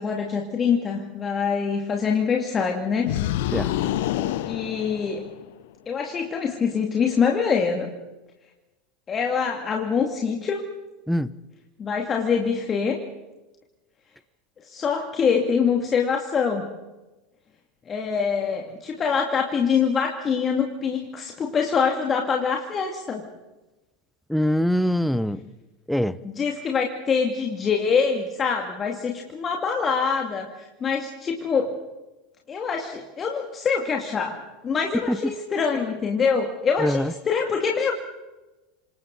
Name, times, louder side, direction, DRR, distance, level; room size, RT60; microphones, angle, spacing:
voice 1, 0.0-3.1 4.4-5.3 5.9-7.9 9.1-10.6 11.8-13.0 14.6-16.7 17.9-23.3 26.3-31.8 32.5-34.4 34.6-37.9, left 6 dB, 30° left, 2 dB, 2.5 m, -24 dB
sound 1, 3.0-5.5, left 13 dB, 60° left, 1.1 m, -27 dB
voice 2, 24.3-25.5 25.9-26.2 35.1-35.3 36.8-37.1, equal, ahead, 18 dB, 0.9 m, -23 dB
29.5 x 26.0 x 4.1 m, 1.1 s
figure-of-eight pair, 75°, 0 cm